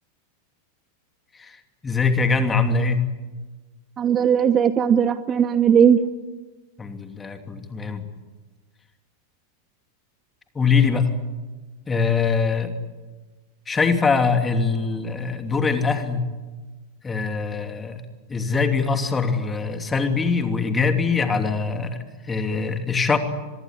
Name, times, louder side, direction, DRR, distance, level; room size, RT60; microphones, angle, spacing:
voice 1, 1.8-3.0 6.8-8.1 10.5-11.1 11.9-12.7 13.7-16.3 17.0-18.0 18.3-23.2, left 4 dB, 15° left, 7 dB, 2.8 m, -22 dB
voice 2, 4.0-6.0, right 8 dB, 25° right, 13 dB, 1.0 m, -18 dB
24.5 x 22.0 x 9.9 m, 1.2 s
figure-of-eight pair, 90°, 0 cm